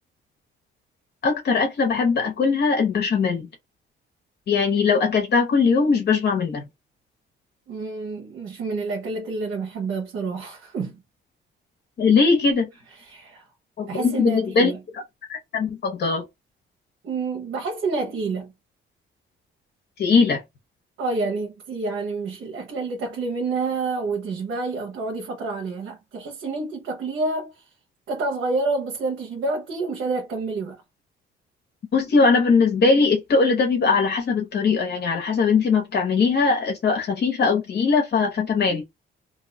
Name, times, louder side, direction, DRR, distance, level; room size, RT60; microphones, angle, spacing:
voice 1, 1.2-3.5 4.5-6.7 12.0-12.7 13.8-14.7 15.3-16.2 20.0-20.4 31.9-38.8, left 4 dB, 55° left, 0.9 m, -20 dB
voice 2, 7.7-11.0 12.9-13.4 13.9-14.8 17.0-18.5 21.0-27.7 28.1-30.8, right 3 dB, 85° right, 1.0 m, -28 dB
2.7 x 2.3 x 4.0 m
cardioid pair, 120°, 21 cm